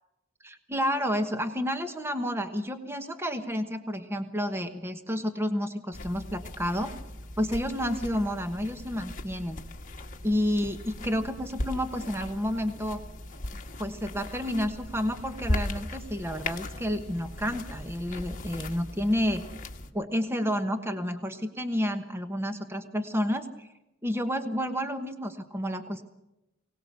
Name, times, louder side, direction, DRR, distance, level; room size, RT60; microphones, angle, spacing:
voice 1, 0.4-6.9 7.4-9.6 10.2-13.0 13.8-19.4 19.9-23.7 24.0-26.0, equal, 10° right, 7 dB, 1.2 m, -30 dB
sound 1, 5.9-19.9, left 1 dB, 40° left, 1.7 m, -38 dB
23.5 x 18.5 x 6.7 m, 0.91 s
head